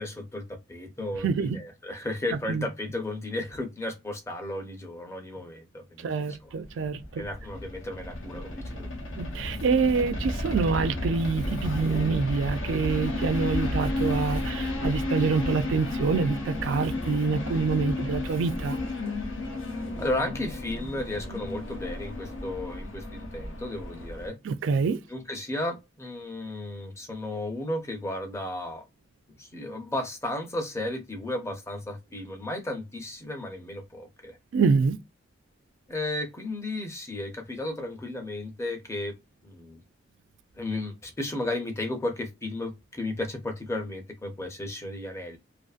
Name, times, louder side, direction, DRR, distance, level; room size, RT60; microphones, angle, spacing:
voice 1, 0.0-6.9 7.2-8.9 20.0-24.4 25.1-28.8 29.4-34.4 35.9-39.1 39.4-39.8 40.6-45.4, left 1 dB, 15° left, 0.5 m, -34 dB
voice 2, 1.2-1.6 2.5-2.7 6.0-7.2 9.2-18.8 24.5-25.0 34.5-35.0, right 4 dB, 75° right, 0.3 m, -26 dB
sound 1, 6.6-24.3, left 1 dB, 90° left, 0.8 m, -32 dB
2.5 x 2.5 x 2.4 m
head